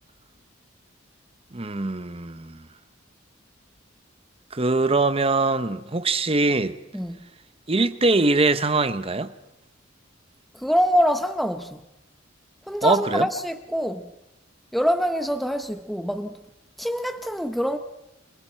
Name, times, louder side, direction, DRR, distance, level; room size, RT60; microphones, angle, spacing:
voice 1, 1.5-2.6 4.5-6.8 7.7-9.3 12.8-13.3, right 3 dB, 30° right, 0.9 m, -22 dB
voice 2, 10.6-11.8 12.7-14.1 14.7-16.4 16.8-17.8, equal, ahead, 0.9 m, -24 dB
29.5 x 23.0 x 4.5 m
head